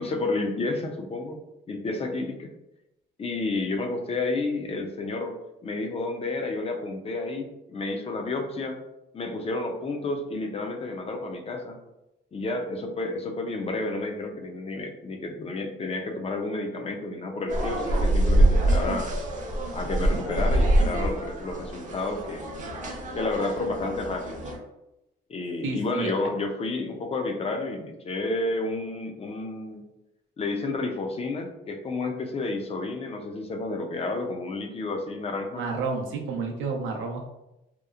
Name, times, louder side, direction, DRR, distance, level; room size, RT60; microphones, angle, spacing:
voice 1, 0.0-1.4 1.7-2.5 3.2-5.4 5.6-8.8 9.1-11.8 12.3-19.1 19.7-22.5 23.2-24.4 25.3-29.8 30.4-35.7, left 2 dB, 30° left, 5 dB, 0.4 m, -31 dB
sound 1, 17.5-24.6, right 1 dB, 40° right, 0.6 m, -25 dB
voice 2, 25.6-26.1 35.5-37.3, right 4 dB, 85° right, 2 dB, 0.5 m, -30 dB
2.8 x 2.0 x 2.3 m, 0.91 s
cardioid pair, 90°, 20 cm